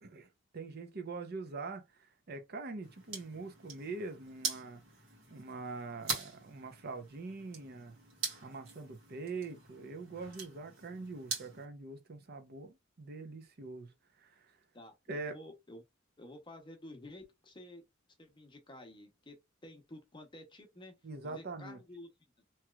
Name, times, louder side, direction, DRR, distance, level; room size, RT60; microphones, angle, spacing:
voice 1, 0.0-4.8 5.3-8.0 8.4-14.6 15.1-15.4 21.0-21.8, right 3 dB, 50° right, 0.6 m, -44 dB
sound 1, 2.8-11.6, right 5 dB, 70° right, 1.5 m, -43 dB
voice 2, 14.7-15.8 16.2-17.9 18.2-19.4 19.6-20.9 21.2-22.1 22.4-22.5, left 1 dB, 25° left, 0.8 m, -51 dB
3.0 x 2.9 x 2.3 m
head